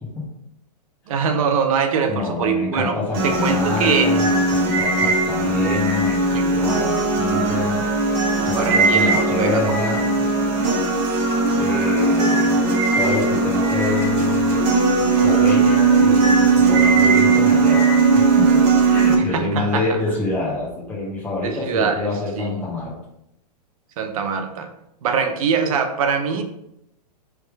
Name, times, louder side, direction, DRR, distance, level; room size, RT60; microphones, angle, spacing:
voice 1, 1.1-2.9 3.2-4.2 5.4-5.7 6.3-6.5 8.4-9.6 16.7-16.9 19.3-20.0 21.4-22.1 22.4-22.6 24.0-24.7 25.0-26.4, right 6 dB, 55° right, 6 dB, 0.7 m, -23 dB
voice 2, 2.1-7.8 8.1-10.1 11.6-14.7 15.0-18.5 18.9-22.9, left 3 dB, 10° left, -7 dB, 1.3 m, -27 dB
sound 1, 3.1-19.2, right 3 dB, 30° right, 0.9 m, -18 dB
3.6 x 3.1 x 4.6 m, 0.80 s
hypercardioid pair, 145°, 21 cm